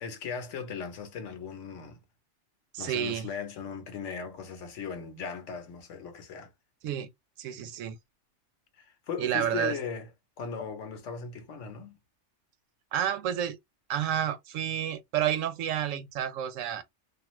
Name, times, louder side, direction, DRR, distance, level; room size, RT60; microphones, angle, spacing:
voice 1, 0.0-2.0 2.8-6.5 8.8-10.1 10.4-12.0, left 6 dB, 75° left, 1.1 m, -38 dB
voice 2, 2.7-3.3 6.8-7.1 7.4-7.9 9.2-9.7 12.9-13.6 13.9-16.8, right 10 dB, 90° right, 0.9 m, -30 dB
2.5 x 2.3 x 2.9 m
omnidirectional pair, 1.3 m